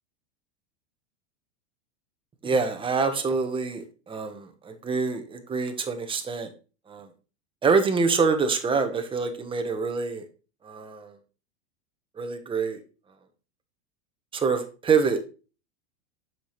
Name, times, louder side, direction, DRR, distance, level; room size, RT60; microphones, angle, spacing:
voice 1, 2.4-6.5 6.9-7.1 7.6-10.2 10.6-11.1 12.2-12.8 14.3-15.3, right 4 dB, 15° right, 6 dB, 1.1 m, -26 dB
7.2 x 5.9 x 3.2 m, 0.33 s
supercardioid pair, 125°, 33 cm